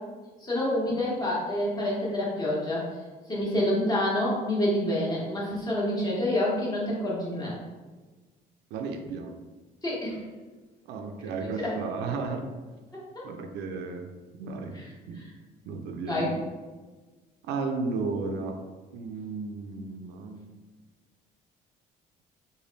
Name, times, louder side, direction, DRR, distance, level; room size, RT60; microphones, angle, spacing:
voice 1, 0.4-2.9 3.3-7.5 9.8-10.2 11.6-11.7 13.1-13.2 16.1-16.3, left 1 dB, 25° left, -6 dB, 1.2 m, -27 dB
voice 2, 8.7-9.3 10.9-12.5 13.2-14.1 14.3-14.8 15.1-15.3 15.7-16.4 17.5-18.5 18.9-20.5, right 4 dB, 85° right, 4 dB, 0.5 m, -34 dB
3.4 x 2.3 x 3.9 m, 1.3 s
cardioid pair, 110°, 17 cm